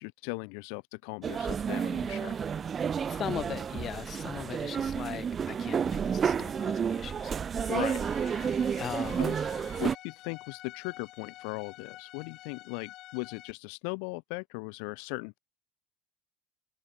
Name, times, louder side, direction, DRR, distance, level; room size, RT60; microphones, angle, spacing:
voice 1, 0.0-2.4 7.7-8.0 9.2-9.4 9.8-15.4, left 40 dB or more, 80° left, 1.1 m, -38 dB
sound 1, 1.2-10.0, right 7 dB, 25° right, 0.6 m, -31 dB
voice 2, 3.0-7.8 8.8-9.4, left 9 dB, 30° left, 3.2 m, -39 dB
Bowed string instrument, 7.5-13.5, left 16 dB, 50° left, 3.8 m, -49 dB
cardioid pair, 160°, 0 cm